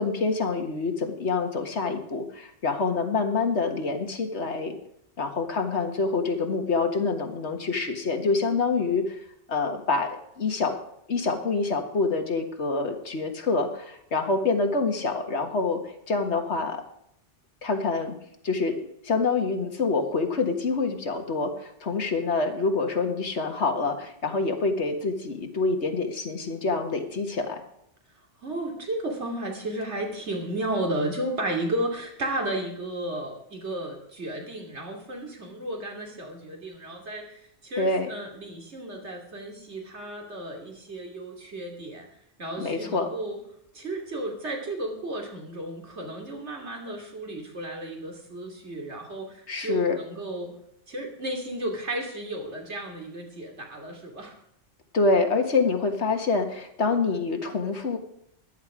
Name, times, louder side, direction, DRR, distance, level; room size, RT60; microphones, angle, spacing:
voice 1, 0.0-4.8 5.2-9.2 9.5-10.8 11.1-15.8 16.1-16.8 17.6-18.2 18.4-27.6 37.8-38.1 42.6-43.1 49.5-50.0 54.9-58.0, left 4 dB, 75° left, 5 dB, 1.9 m, -26 dB
voice 2, 28.4-42.1 42.4-43.4 43.7-50.5 50.9-54.4, right 1 dB, 75° right, 1 dB, 3.0 m, -33 dB
14.0 x 11.0 x 4.9 m, 0.73 s
omnidirectional pair, 1.2 m